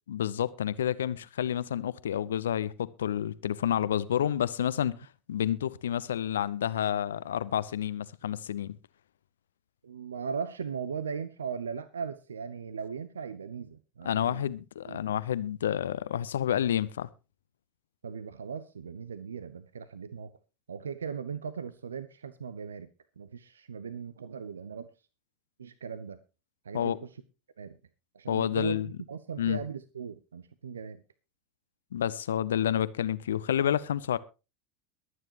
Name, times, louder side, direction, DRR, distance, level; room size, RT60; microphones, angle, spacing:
voice 1, 0.1-8.8 14.0-17.1 26.7-27.0 28.3-28.9 29.4-29.6 31.9-34.2, left 10 dB, 75° left, 0.6 m, -29 dB
voice 2, 9.8-14.4 14.9-15.0 18.0-20.3 20.7-22.9 23.2-24.9 25.6-26.2 26.6-27.1 27.6-27.8 28.1-31.0, right 6 dB, 80° right, 0.7 m, -38 dB
22.5 x 9.4 x 3.0 m
figure-of-eight pair, 80°, 0 cm